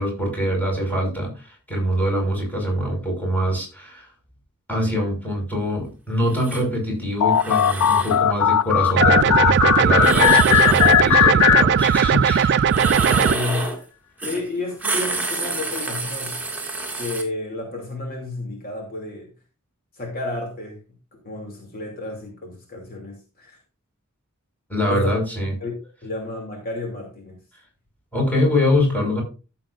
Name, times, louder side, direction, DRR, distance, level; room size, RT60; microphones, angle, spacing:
voice 1, 0.0-4.1 4.7-12.8 24.7-25.5 28.1-29.2, equal, 10° left, 5.4 m, -24 dB
sound 1, 6.3-6.6 7.3-8.2 10.0-11.0 12.7-13.8 14.2-14.4 14.7-17.2, right 2 dB, 10° right, 2.5 m, -28 dB
sound 2, 7.2-12.3, left 10 dB, 80° left, 0.3 m, -18 dB
sound 3, 9.0-13.4, right 7 dB, 50° right, 0.4 m, -18 dB
voice 2, 13.2-13.7 14.2-16.4 17.0-19.3 19.9-20.8 21.2-23.6 24.9-25.2 25.6-25.8 26.0-27.4, left 2 dB, 40° left, 2.8 m, -31 dB
14.5 x 7.6 x 2.6 m
head